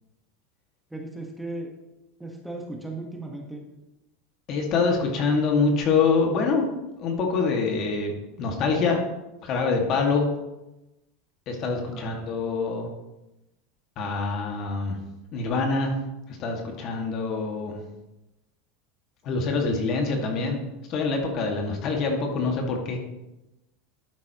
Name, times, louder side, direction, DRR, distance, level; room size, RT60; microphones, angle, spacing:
voice 1, 0.9-1.7 2.2-3.6 11.9-12.2, right 2 dB, 5° right, 1 dB, 1.5 m, -36 dB
voice 2, 4.5-6.7 7.0-9.0 9.4-10.3 11.5-12.9 14.0-15.0 15.3-15.9 16.4-17.8 19.2-20.6 20.9-23.0, left 4 dB, 45° left, 2 dB, 2.1 m, -25 dB
11.5 x 8.6 x 3.1 m, 0.97 s
supercardioid pair, 115°, 0 cm